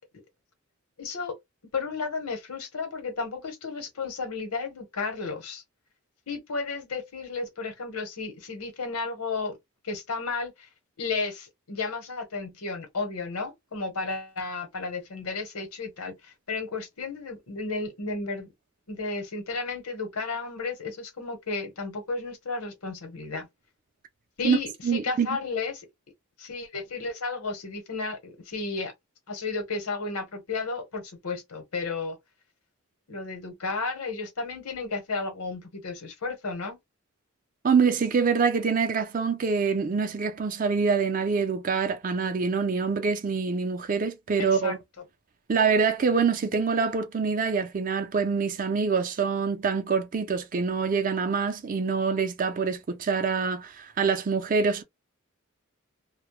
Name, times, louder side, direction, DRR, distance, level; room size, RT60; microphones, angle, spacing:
voice 1, 1.0-1.3 1.7-5.6 6.3-9.5 9.8-10.7 11.0-18.5 18.9-23.5 24.4-25.9 26.4-28.9 29.3-32.2 33.1-36.8 44.4-44.8, left 4 dB, 90° left, 0.9 m, -33 dB
voice 2, 24.8-25.3 37.6-44.8 45.5-54.8, right 5 dB, 35° right, 0.4 m, -25 dB
2.1 x 2.0 x 3.0 m
head